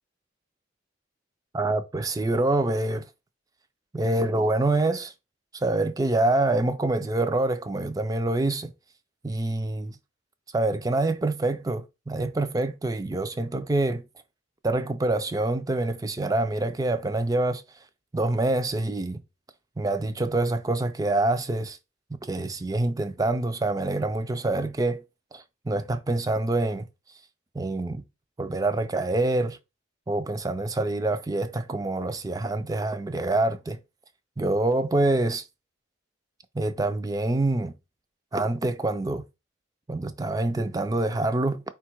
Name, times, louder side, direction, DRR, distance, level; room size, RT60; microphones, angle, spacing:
voice 1, 1.5-3.0 3.9-5.1 5.5-8.7 9.2-10.0 10.5-14.0 14.6-17.6 18.1-19.2 19.8-21.8 22.2-25.0 25.3-26.8 27.5-28.0 28.4-29.6 30.1-33.8 34.4-35.4 36.5-37.7 38.3-39.2 39.9-41.6, right 2 dB, 20° right, 0.4 m, -26 dB
4.6 x 2.3 x 4.4 m
head